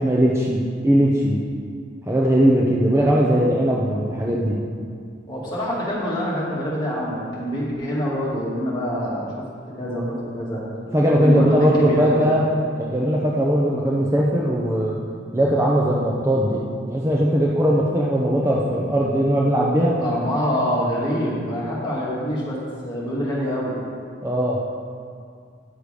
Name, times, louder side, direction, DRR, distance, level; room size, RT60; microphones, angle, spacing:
voice 1, 0.0-1.4 2.1-4.6 10.9-12.4 12.8-15.0 15.3-16.6 16.9-20.0 24.2-24.6, equal, 15° right, -4 dB, 0.7 m, -19 dB
voice 2, 5.3-9.3 9.7-10.6 11.2-12.3 20.0-22.6 22.8-23.8, equal, 20° left, -7 dB, 2.1 m, -25 dB
9.8 x 6.6 x 5.0 m, 2.2 s
head